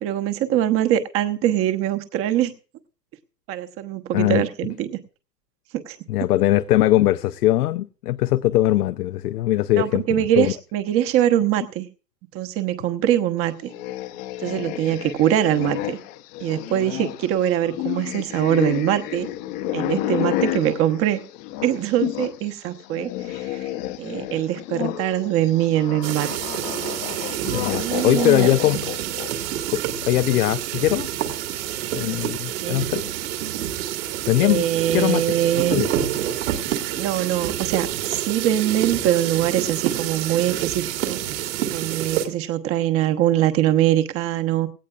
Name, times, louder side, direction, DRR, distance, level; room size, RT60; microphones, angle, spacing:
voice 1, 0.0-2.5 3.5-5.0 5.9-6.0 9.8-11.9 12.3-13.7 14.4-16.0 16.4-19.3 19.7-21.2 21.6-23.7 24.0-26.3 27.2-27.5 27.7-28.5 32.6-32.8 34.4-35.8 36.9-41.2 41.7-44.7, right 12 dB, 25° right, 1.1 m, -23 dB
voice 2, 4.1-4.4 6.1-10.0 10.4-10.5 27.5-28.8 29.7-31.1 31.9-33.1 34.3-34.6 34.9-35.2 35.7-35.9, left 14 dB, 65° left, 0.7 m, -20 dB
sound 1, 13.6-22.4 22.7-29.5, left 14 dB, 35° left, 0.9 m, -30 dB
sound 2, 26.0-42.3, right 11 dB, 55° right, 2.2 m, -28 dB
17.0 x 17.0 x 2.4 m
hypercardioid pair, 125°, 49 cm